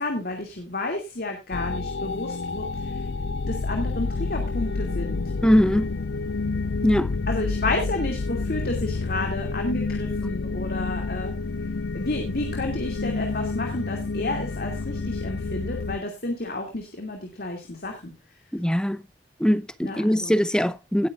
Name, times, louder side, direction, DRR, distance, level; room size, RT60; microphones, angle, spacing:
voice 1, 0.0-3.1 3.4-5.2 7.3-11.3 11.9-18.1 19.8-20.4, left 2 dB, 60° left, 2.5 m, -31 dB
sound 1, 1.5-16.0, left 3 dB, 75° left, 0.5 m, -29 dB
voice 2, 5.4-5.9 6.8-7.1 18.5-19.0 19.4-21.1, equal, 5° left, 0.7 m, -21 dB
18.5 x 8.7 x 2.4 m
head